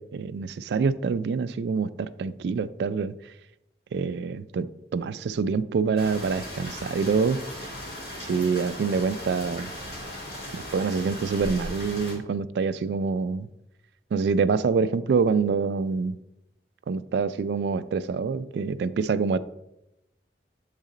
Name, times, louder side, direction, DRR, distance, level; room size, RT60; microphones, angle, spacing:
voice 1, 0.0-3.1 3.9-7.4 8.2-9.7 10.5-13.5 14.1-16.2 16.9-19.4, right 5 dB, 70° right, 0.3 m, -26 dB
sound 1, 6.0-12.1, left 1 dB, 55° left, 1.6 m, -38 dB
7.3 x 4.1 x 3.8 m
head